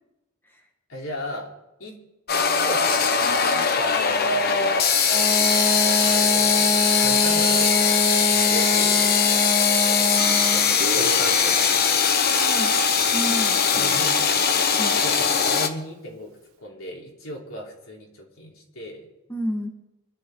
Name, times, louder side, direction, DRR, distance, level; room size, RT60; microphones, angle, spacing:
voice 1, 0.9-1.5 1.8-2.0 2.4-4.8 6.0-6.7 7.0-7.9 8.3-9.2 10.5-11.7 13.7-14.2 15.0-19.1, equal, 80° left, -1 dB, 4.0 m, -36 dB
sound 1, 2.3-15.7, left 6 dB, 50° left, 1.2 m, -20 dB
Wind instrument woodwind instrument, 5.0-10.7, left 1 dB, 25° left, 1.7 m, -25 dB
Guitar, 10.8-14.3, right 2 dB, 85° right, 1.3 m, -37 dB
voice 2, 12.2-12.8 13.1-14.1 14.8-15.0 19.3-19.7, equal, 10° left, 1 dB, 1.9 m, -31 dB
24.5 x 12.0 x 4.0 m, 0.93 s
head